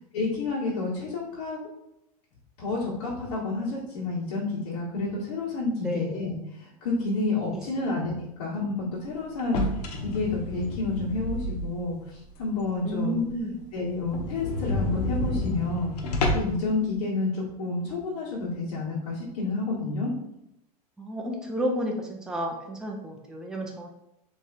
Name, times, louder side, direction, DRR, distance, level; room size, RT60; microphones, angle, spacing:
voice 1, 0.1-1.6 2.6-9.6 10.0-13.2 13.7-20.1, left 3 dB, 70° left, -8 dB, 1.5 m, -30 dB
voice 2, 5.8-6.2 7.8-7.9 12.8-13.6 21.0-23.9, equal, 5° right, 0 dB, 0.5 m, -31 dB
sound 1, 9.4-11.9 12.4-12.5 12.9-13.0 13.2-13.3 13.6-13.7 14.0-16.7, left 1 dB, 85° left, 0.9 m, -30 dB
3.4 x 3.1 x 4.1 m, 0.82 s
supercardioid pair, 125°, 20 cm